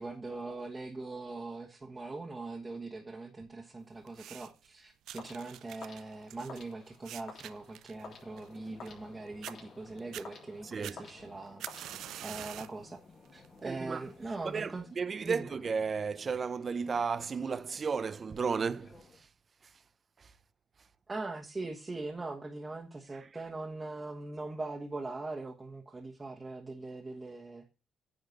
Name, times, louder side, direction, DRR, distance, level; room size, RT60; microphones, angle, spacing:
voice 1, 0.0-11.7 12.2-13.0 13.3-14.9 15.2-15.4 21.1-27.7, right 3 dB, 25° right, 1.3 m, -41 dB
sound 1, 4.1-4.7 5.1-9.1 9.4-9.6 10.0-10.3 10.8-12.8 13.2-13.6 14.4-14.5, right 12 dB, 80° right, 0.3 m, -46 dB
sound 2, 5.2-12.4, left 4 dB, 65° left, 3.5 m, -52 dB
sound 3, 7.9-19.2, left 4 dB, 40° left, 2.0 m, -58 dB
voice 2, 10.6-11.1 13.6-14.0 14.4-19.3 19.6-19.8 20.2-20.3 20.8-20.9 23.2-23.3, right 5 dB, 40° right, 0.6 m, -34 dB
9.4 x 4.4 x 6.8 m
cardioid pair, 90°, 0 cm